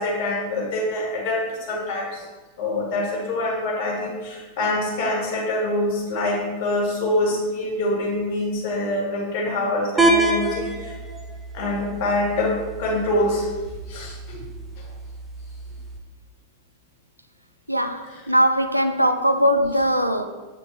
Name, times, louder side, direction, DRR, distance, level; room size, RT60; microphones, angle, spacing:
voice 1, 0.0-2.2 2.6-10.9 11.5-13.5 13.9-14.4, left 1 dB, 45° left, 1.9 m, -25 dB
sound 1, 10.0-16.0, right 2 dB, 10° right, 0.7 m, -27 dB
voice 2, 17.7-20.3, equal, 90° right, 0.4 m, -20 dB
8.1 x 4.1 x 3.3 m
figure-of-eight pair, 90°, 0 cm